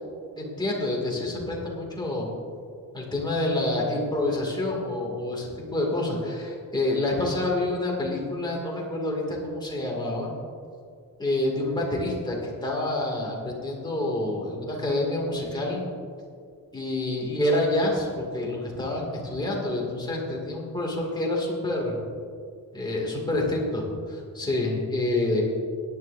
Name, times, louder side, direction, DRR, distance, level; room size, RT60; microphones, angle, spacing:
voice 1, 0.4-2.3 2.9-10.3 11.2-15.8 16.7-22.0 22.7-23.8 24.1-25.4, left 1 dB, 10° left, -2 dB, 2.4 m, -27 dB
17.5 x 11.0 x 2.7 m, 2.2 s
wide cardioid pair, 155°, 35 cm